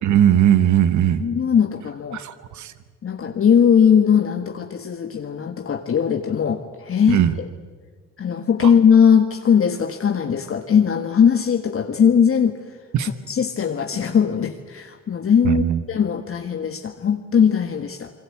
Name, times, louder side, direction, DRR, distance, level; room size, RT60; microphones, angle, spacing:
voice 1, 0.0-1.2 2.1-2.7 7.1-7.4 8.6-8.7 12.9-13.1 15.4-15.8, right 10 dB, 70° right, 12 dB, 1.2 m, -18 dB
voice 2, 1.2-2.2 3.0-7.5 8.2-12.6 13.0-18.1, left 7 dB, 45° left, 5 dB, 1.6 m, -19 dB
28.0 x 21.5 x 8.6 m, 1.5 s
cardioid pair, 90°, 30 cm